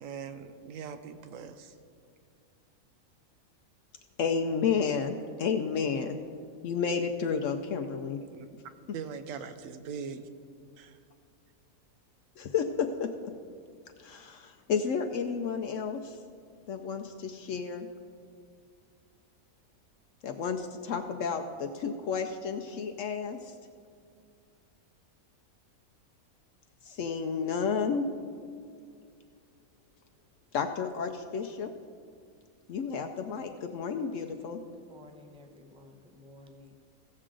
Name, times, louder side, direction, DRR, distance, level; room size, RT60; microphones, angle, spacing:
voice 1, 0.0-1.8 8.3-8.5 8.9-10.3 10.8-11.0, right 6 dB, 70° right, 10 dB, 1.0 m, -41 dB
voice 2, 4.2-6.2 6.6-8.2 12.4-13.3 14.0-16.2 16.7-17.9 20.2-23.6 26.8-28.1 30.5-31.7 32.7-34.6, left 6 dB, 70° left, 5 dB, 0.9 m, -31 dB
voice 3, 34.7-36.8, left 2 dB, 10° right, 4 dB, 0.4 m, -53 dB
16.0 x 7.5 x 3.8 m, 2.2 s
omnidirectional pair, 1.5 m